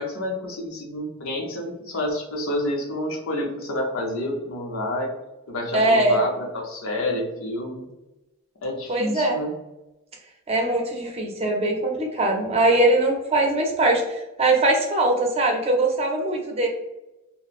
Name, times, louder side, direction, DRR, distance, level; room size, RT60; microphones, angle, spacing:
voice 1, 0.0-5.1 5.5-7.9 8.6-9.5, left 1 dB, 85° left, 0 dB, 0.7 m, -29 dB
voice 2, 5.7-6.2 8.9-9.4 10.5-16.7, right 2 dB, 30° right, 1 dB, 0.5 m, -21 dB
2.9 x 2.0 x 2.4 m, 0.98 s
head